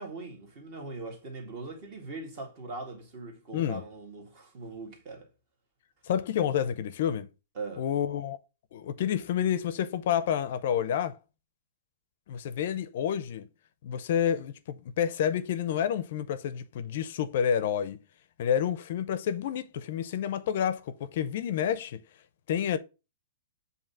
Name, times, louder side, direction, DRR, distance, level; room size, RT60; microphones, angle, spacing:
voice 1, 0.0-5.3 7.6-7.8, right 3 dB, 30° right, 1.8 m, -41 dB
voice 2, 6.1-7.3 7.8-8.4 8.7-11.2 12.3-13.5 13.8-18.0 18.4-22.0 22.5-22.8, left 9 dB, 50° left, 0.5 m, -29 dB
7.5 x 2.8 x 5.4 m
hypercardioid pair, 170°, 0 cm